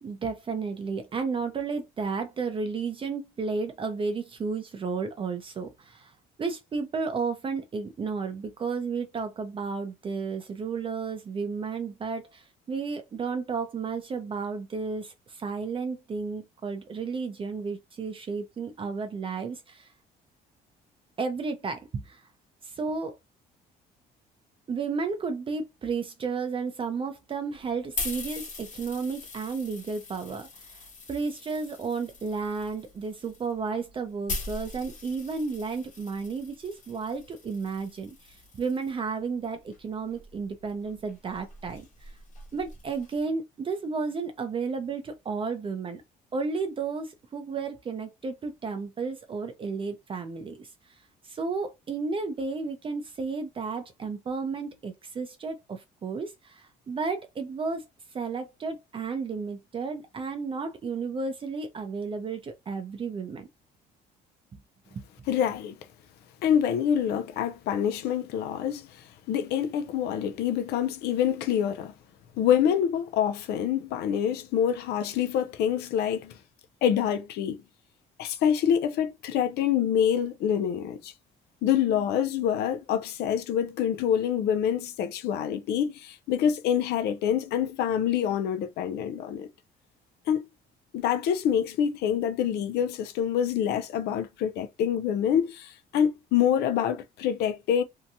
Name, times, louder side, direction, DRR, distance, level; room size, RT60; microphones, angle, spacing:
voice 1, 0.0-6.1 6.4-19.9 21.2-22.2 22.6-23.2 24.7-41.9 42.5-46.0 46.3-50.7 51.2-57.8 58.1-63.5 64.5-64.6 64.9-65.0, right 4 dB, 30° right, 0.5 m, -32 dB
sound 1, 27.5-38.9 39.7-43.2, left 3 dB, 45° left, 1.2 m, -42 dB
voice 2, 65.3-65.8 66.4-71.9 72.4-76.4 76.8-77.6 78.2-81.1 81.6-89.5 90.3-90.5 90.9-97.8, left 9 dB, 75° left, 0.4 m, -26 dB
2.7 x 2.2 x 2.6 m
cardioid pair, 110°, 17 cm